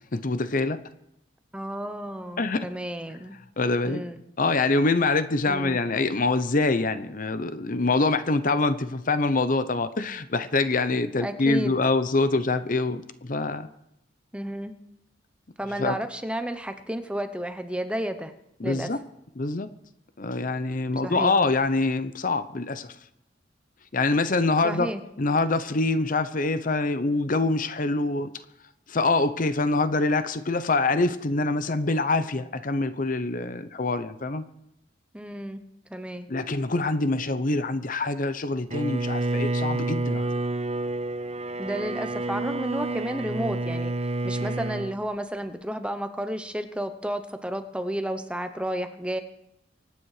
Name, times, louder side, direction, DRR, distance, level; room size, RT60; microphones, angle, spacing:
voice 1, 0.1-0.8 2.4-2.7 3.6-4.0 4.4-13.7 15.8-16.0 18.6-19.0 19.4-19.7 20.2-22.9 23.9-24.9 25.2-28.3 28.9-34.4 36.3-40.3, left 3 dB, 45° left, 12 dB, 0.8 m, -25 dB
voice 2, 1.5-3.3 3.8-4.2 5.5-5.8 11.2-11.8 14.3-14.8 15.6-18.3 18.6-18.9 21.0-21.3 24.6-25.0 35.1-36.3 41.6-49.2, equal, 5° right, 8 dB, 0.9 m, -32 dB
Bowed string instrument, 38.7-45.0, right 2 dB, 35° right, 0.6 m, -29 dB
25.0 x 9.3 x 4.9 m, 0.79 s
head